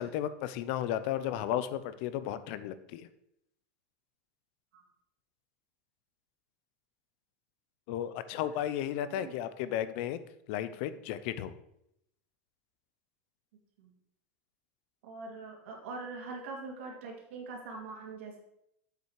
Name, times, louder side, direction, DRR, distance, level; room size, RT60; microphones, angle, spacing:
voice 1, 0.0-3.1 7.9-10.2 10.5-11.5, left 11 dB, 60° left, 13 dB, 0.6 m, -34 dB
voice 2, 15.0-18.4, right 3 dB, 85° right, 1 dB, 2.3 m, -43 dB
7.7 x 5.7 x 4.7 m, 0.79 s
supercardioid pair, 150°, 7 cm